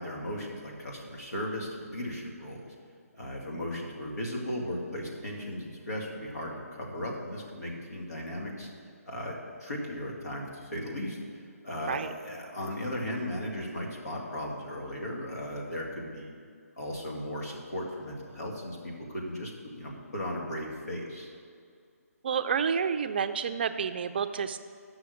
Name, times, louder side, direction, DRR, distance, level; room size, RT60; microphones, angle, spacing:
voice 1, 0.0-2.6 3.2-8.7 9.1-9.3 9.6-16.3 16.8-21.3, left 1 dB, 80° left, -2 dB, 2.2 m, -36 dB
voice 2, 22.2-24.6, right 6 dB, 40° right, 10 dB, 0.4 m, -29 dB
8.1 x 6.2 x 6.3 m, 2.2 s
hypercardioid pair, 155°, 8 cm